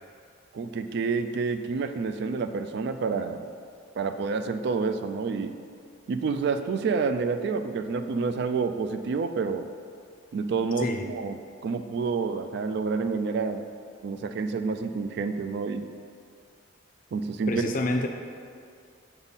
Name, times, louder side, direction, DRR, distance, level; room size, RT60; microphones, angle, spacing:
voice 1, 0.5-3.5 4.0-5.6 6.1-9.7 10.3-13.6 14.0-15.9 17.1-17.7, right 4 dB, 60° right, 9 dB, 0.3 m, -28 dB
voice 2, 17.5-18.1, left 2 dB, 45° left, 5 dB, 0.4 m, -27 dB
6.9 x 3.7 x 4.1 m, 2.2 s
head